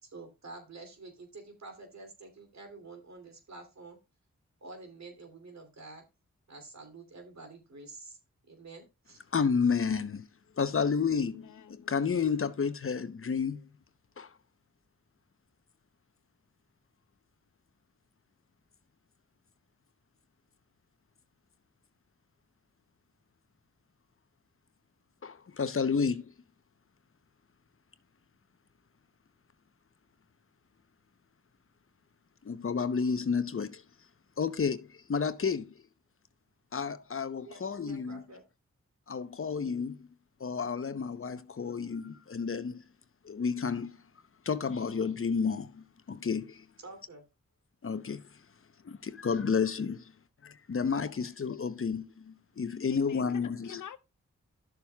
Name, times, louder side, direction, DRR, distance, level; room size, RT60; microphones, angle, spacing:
voice 1, 0.0-4.0 4.6-6.0 6.5-8.2 8.5-9.2 37.4-38.4 46.8-47.2, right 3 dB, 65° right, 3.0 m, -48 dB
voice 2, 9.3-10.3 10.6-13.7 14.2-14.3 25.2-26.3 32.4-33.8 34.4-35.8 36.7-38.2 39.1-40.0 40.4-42.8 43.2-43.9 44.4-46.7 47.8-48.2 48.8-50.0 50.4-53.8, left 5 dB, 45° left, 0.8 m, -31 dB
voice 3, 11.4-11.9 52.9-54.0, left 9 dB, 80° left, 0.8 m, -47 dB
13.0 x 7.0 x 2.3 m
cardioid pair, 45°, 30 cm